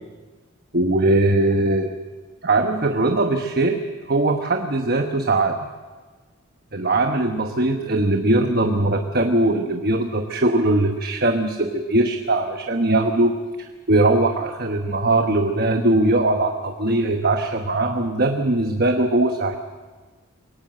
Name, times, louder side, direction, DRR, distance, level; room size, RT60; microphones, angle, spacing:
voice 1, 0.7-1.9 2.4-3.8 4.1-5.7 6.7-13.3 13.9-19.6, right 2 dB, 45° right, 5 dB, 1.2 m, -20 dB
22.5 x 18.5 x 7.7 m, 1.4 s
head